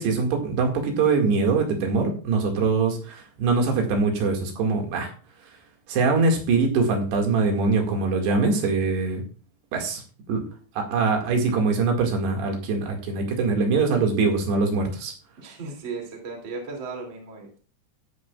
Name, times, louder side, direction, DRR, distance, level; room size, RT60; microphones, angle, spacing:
voice 1, 0.0-5.1 5.9-9.2 9.7-10.0 10.3-10.5 10.8-15.1, right 4 dB, 70° right, 2 dB, 4.1 m, -23 dB
voice 2, 15.4-17.6, right 4 dB, 30° right, 0 dB, 2.8 m, -36 dB
14.0 x 10.5 x 2.4 m, 0.38 s
omnidirectional pair, 5.2 m